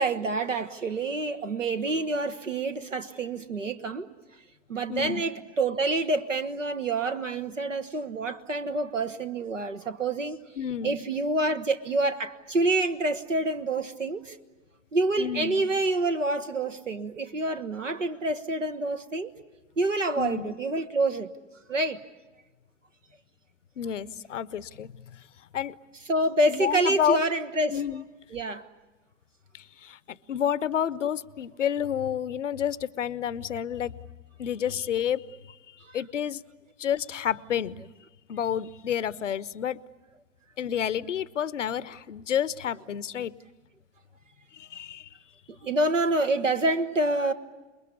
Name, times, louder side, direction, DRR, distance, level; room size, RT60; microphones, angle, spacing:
voice 1, 0.0-4.1 4.7-10.4 10.8-14.4 14.9-19.3 19.8-21.3 21.7-22.0 26.1-27.8 28.3-28.6 35.8-36.0 45.5-47.3, right 2 dB, 85° right, 1.4 m, -27 dB
voice 2, 4.9-5.2 10.6-11.0 15.2-15.6 20.2-20.6 23.8-25.2 25.5-25.8 26.5-27.2 27.7-28.0 29.5-34.0 34.4-36.4 36.8-37.8 38.3-39.8 40.6-43.4 44.5-45.1, left 9 dB, 80° left, 0.8 m, -30 dB
28.0 x 22.0 x 8.4 m
figure-of-eight pair, 85°, 37 cm